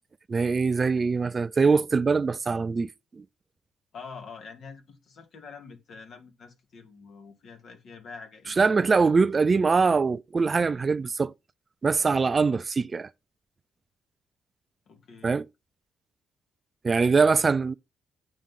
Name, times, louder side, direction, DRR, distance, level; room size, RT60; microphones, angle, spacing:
voice 1, 0.3-3.2 8.6-11.3 11.8-13.1 15.2-15.5 16.8-17.7, right 4 dB, 35° right, 0.4 m, -23 dB
voice 2, 3.9-9.2 12.0-12.3 14.9-15.4, left 5 dB, 60° left, 2.3 m, -46 dB
8.7 x 3.9 x 5.6 m
cardioid pair, 90°, 0 cm